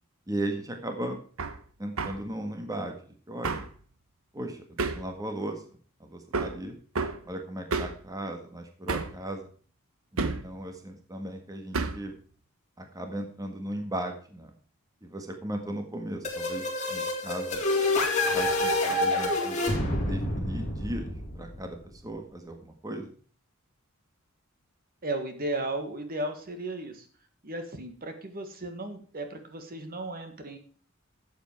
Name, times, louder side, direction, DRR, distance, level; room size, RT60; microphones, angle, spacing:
voice 1, 0.3-1.2 1.8-3.6 4.3-4.6 4.9-5.6 6.0-6.7 7.2-9.5 10.1-12.1 12.8-14.5 15.0-17.6 18.3-19.6 19.9-23.1, right 1 dB, 15° right, 4 dB, 1.6 m, -37 dB
Hammer, 1.4-1.6 2.0-2.2 3.4-3.7 4.8-5.1 6.3-6.6 7.0-7.2 7.7-8.0 8.9-9.2 10.2-10.5 11.7-12.1, right 3 dB, 80° right, 1.0 m, -30 dB
sound 1, 16.2-21.9, left 2 dB, 35° left, 3.8 m, -28 dB
voice 2, 25.0-27.1 27.4-30.6, right 2 dB, 45° right, 7 dB, 1.8 m, -35 dB
12.0 x 8.2 x 4.6 m, 0.42 s
head